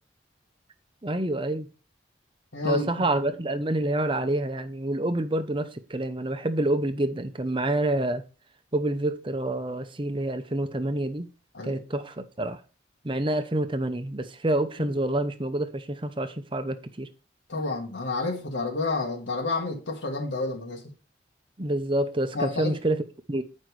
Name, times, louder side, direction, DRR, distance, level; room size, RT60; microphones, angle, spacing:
voice 1, 1.0-1.7 2.6-8.2 8.7-11.3 11.6-12.6 13.0-17.1 21.6-23.4, right 1 dB, 25° right, 0.7 m, -27 dB
voice 2, 2.5-3.1 11.5-11.8 17.5-20.9 22.3-22.8, left 3 dB, 70° left, 1.4 m, -30 dB
9.5 x 5.3 x 4.7 m
head